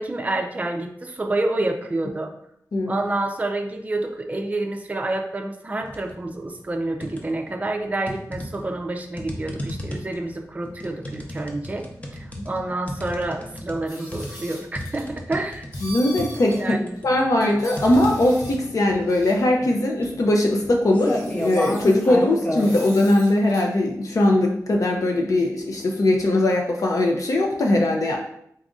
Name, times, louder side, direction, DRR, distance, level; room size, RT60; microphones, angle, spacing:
voice 1, 0.0-2.3 2.9-11.9 12.1-15.7 16.6-16.9, right 2 dB, 25° right, 2 dB, 0.4 m, -28 dB
sound 1, 5.8-6.2 6.6-7.5 8.1-22.7, left 1 dB, 20° left, 0.6 m, -32 dB
sound 2, 13.9-15.1 15.7-16.6 16.9-17.0 17.4-18.7 19.1-19.4 20.4-20.5 20.9-22.1 22.6-23.7, equal, 80° left, 1.4 m, -41 dB
voice 2, 15.8-16.8 17.0-28.2, left 1 dB, 60° left, 0 dB, 0.5 m, -20 dB
4.0 x 2.5 x 3.6 m, 0.71 s
wide cardioid pair, 120°, 6 cm